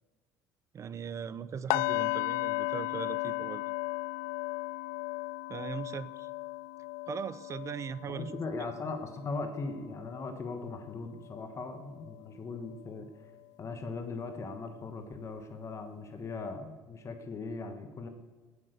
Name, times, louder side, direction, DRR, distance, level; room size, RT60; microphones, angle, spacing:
voice 1, 0.7-3.6 5.5-6.3 7.1-8.3, right 7 dB, 35° right, 17 dB, 0.6 m, -39 dB
sound 1, 1.7-11.6 12.0-12.2 12.7-12.8, left 20 dB, 85° left, 0.4 m, -36 dB
voice 2, 8.1-13.3 13.6-18.1, left 3 dB, 35° left, 7 dB, 1.3 m, -39 dB
17.5 x 8.1 x 6.7 m, 1.3 s
supercardioid pair, 105°, 8 cm